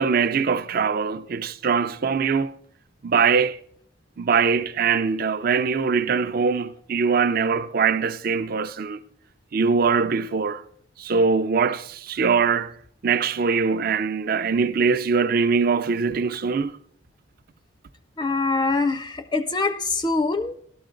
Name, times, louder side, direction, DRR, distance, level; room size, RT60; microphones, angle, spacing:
voice 1, 0.0-2.5 3.0-3.6 4.2-9.0 9.5-10.6 11.0-12.7 13.0-16.8, right 5 dB, 45° right, 0.5 m, -22 dB
voice 2, 18.2-20.6, left 3 dB, 20° left, 0.4 m, -24 dB
13.0 x 12.0 x 3.8 m
head